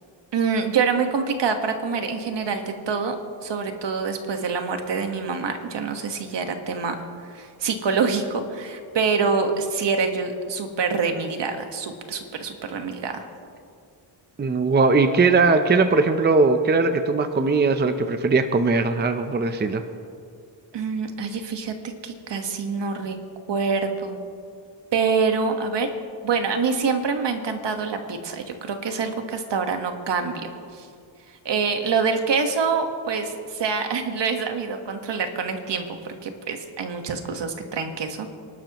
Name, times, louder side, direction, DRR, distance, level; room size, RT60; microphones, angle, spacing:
voice 1, 0.3-3.1 3.4-6.9 7.3-13.3 20.7-21.7 22.0-23.1 23.5-24.2 24.9-25.9 26.2-30.3 30.7-30.9 31.4-38.3, right 5 dB, 65° right, 5 dB, 1.6 m, -26 dB
voice 2, 14.4-19.8, right 3 dB, 20° right, 8 dB, 0.6 m, -20 dB
27.5 x 12.0 x 3.0 m, 2.3 s
wide cardioid pair, 120°, 46 cm